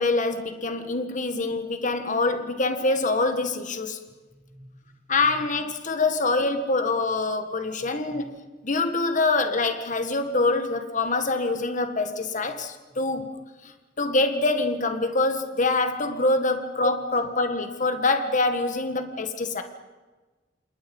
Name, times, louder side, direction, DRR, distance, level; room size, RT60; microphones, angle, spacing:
voice 1, 0.0-4.0 5.1-13.4 13.6-19.6, left 3 dB, 45° left, 7 dB, 1.8 m, -25 dB
voice 2, 4.0-5.5 8.1-8.2 12.9-13.0 18.7-18.8 19.4-19.5, equal, 15° right, -1 dB, 7.4 m, -50 dB
28.5 x 28.0 x 5.4 m, 1.3 s
head